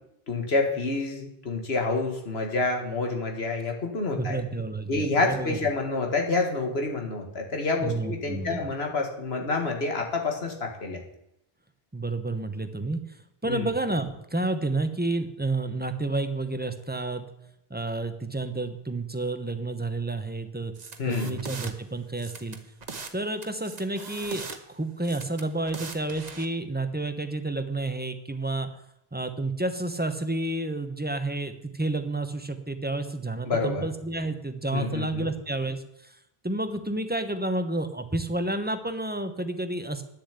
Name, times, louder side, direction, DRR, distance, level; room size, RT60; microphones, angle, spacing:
voice 1, 0.3-4.4 4.9-11.0 13.5-13.7 21.0-21.4 33.5-33.9 34.7-35.3, left 3 dB, 80° left, 2 dB, 2.0 m, -28 dB
voice 2, 4.2-5.6 7.8-8.7 11.9-17.3 17.7-20.7 21.1-22.6 23.1-28.7 29.1-36.2 36.4-40.0, right 2 dB, 10° right, 8 dB, 0.8 m, -30 dB
sound 1, 20.7-21.7 22.2-23.1 23.4-24.6 25.0-26.4, right 4 dB, 45° right, 1.0 m, -40 dB
9.8 x 7.0 x 8.3 m, 0.79 s
omnidirectional pair, 1.1 m